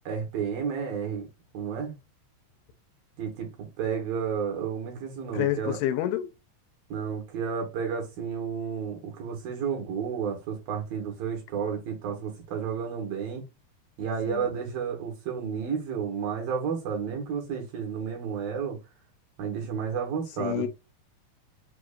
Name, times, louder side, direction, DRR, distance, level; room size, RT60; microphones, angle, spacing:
voice 1, 0.1-1.3 1.5-1.9 3.2-5.8 6.9-13.5 14.0-18.8 19.4-20.7, right 7 dB, 65° right, 3.1 m, -31 dB
voice 2, 5.3-6.3 14.3-14.5 20.4-20.7, left 12 dB, 85° left, 2.6 m, -28 dB
7.0 x 2.9 x 2.5 m
omnidirectional pair, 4.7 m